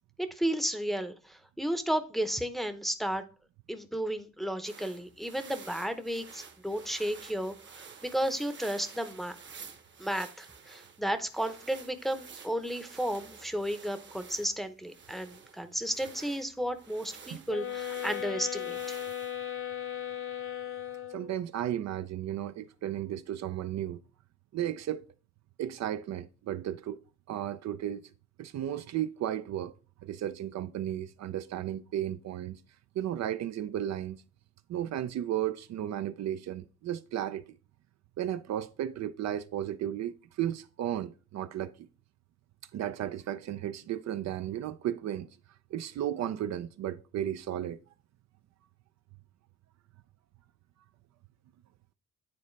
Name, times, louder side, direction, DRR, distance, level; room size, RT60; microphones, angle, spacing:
voice 1, 0.2-3.2 3.7-9.4 10.0-19.0, right 1 dB, ahead, 0.7 m, -33 dB
sound 1, 4.6-19.4, right 5 dB, 40° right, 1.0 m, -51 dB
sound 2, 17.5-21.4, left 10 dB, 45° left, 0.8 m, -37 dB
voice 2, 21.1-24.0 24.5-25.1 25.6-27.0 27.3-28.1 28.4-29.7 30.0-32.6 32.9-34.2 34.7-37.4 38.2-41.9 42.7-45.3 45.7-47.8, right 11 dB, 60° right, 0.5 m, -34 dB
9.6 x 4.1 x 3.2 m
cardioid pair, 90°, 30 cm